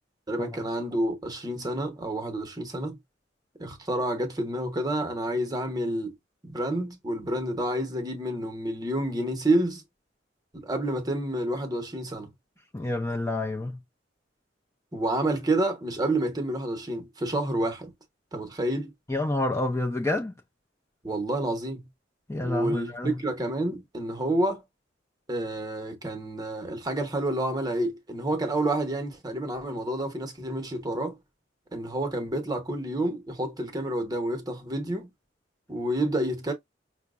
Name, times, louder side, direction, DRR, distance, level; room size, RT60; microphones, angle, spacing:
voice 1, 0.3-3.0 3.6-6.2 6.4-9.8 10.5-12.3 14.9-17.9 18.3-18.9 21.0-21.9 22.4-24.6 25.3-31.2 31.7-35.1 35.7-36.5, right 1 dB, 20° right, 0.8 m, -29 dB
voice 2, 12.7-13.8 19.1-20.3 22.3-23.2, left 2 dB, 15° left, 0.5 m, -28 dB
5.6 x 2.1 x 2.4 m
head